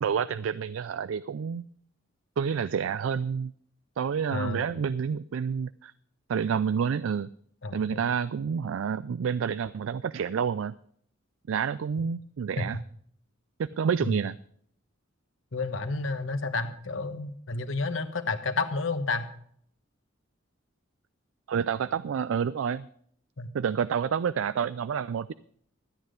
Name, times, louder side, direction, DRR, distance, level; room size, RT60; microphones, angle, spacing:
voice 1, 0.0-1.6 2.4-3.5 4.0-5.9 6.3-7.3 7.7-10.7 11.5-12.8 13.6-14.4 21.5-22.9 23.5-25.3, right 7 dB, 85° right, 16 dB, 0.4 m, -29 dB
voice 2, 4.3-4.8 7.6-8.0 12.6-12.7 14.0-14.1 15.5-19.3 23.4-23.5, left 3 dB, 75° left, 9 dB, 1.2 m, -31 dB
13.0 x 9.5 x 5.1 m, 0.62 s
head